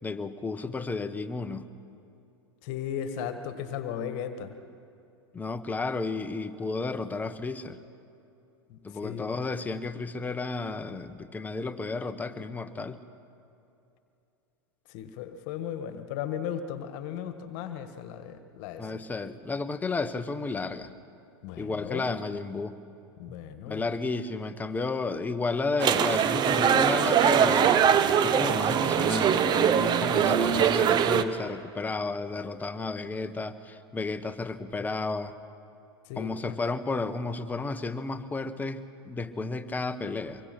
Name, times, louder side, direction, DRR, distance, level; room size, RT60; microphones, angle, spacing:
voice 1, 0.0-1.6 5.3-7.8 8.8-13.0 18.8-20.9 21.6-22.8 23.7-35.4 36.2-40.4, left 3 dB, 10° left, 9 dB, 1.2 m, -32 dB
voice 2, 2.6-4.5 8.7-9.3 14.9-18.9 21.4-22.1 23.2-23.9 36.0-36.6, left 9 dB, 50° left, 9 dB, 1.6 m, -36 dB
sound 1, 25.8-31.2, right 8 dB, 30° right, 1.2 m, -22 dB
25.5 x 22.5 x 6.0 m, 2.7 s
hypercardioid pair, 105°, 14 cm